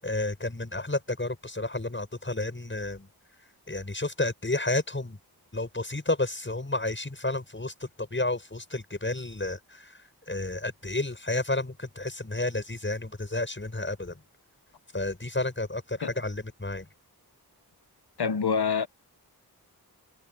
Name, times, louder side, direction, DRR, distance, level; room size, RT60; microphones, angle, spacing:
voice 1, 0.0-3.1 3.7-5.2 5.5-10.0 10.3-14.2 14.9-16.9, left 2 dB, 30° left, 7.5 m, -31 dB
voice 2, 18.2-18.9, left 6 dB, 75° left, 1.4 m, -26 dB
wide cardioid pair, 70°, 39 cm